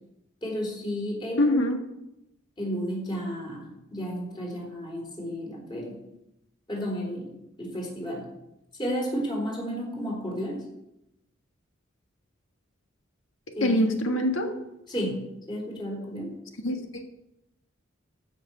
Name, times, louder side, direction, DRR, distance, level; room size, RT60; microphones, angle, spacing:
voice 1, 0.4-1.6 2.6-6.0 6.7-8.3 8.8-10.7 13.6-13.8 14.9-16.4, equal, 25° left, -1 dB, 3.7 m, -32 dB
voice 2, 1.4-1.8 13.6-14.6 16.6-17.0, left 1 dB, 75° left, 4 dB, 1.6 m, -24 dB
14.5 x 6.1 x 6.1 m, 0.87 s
head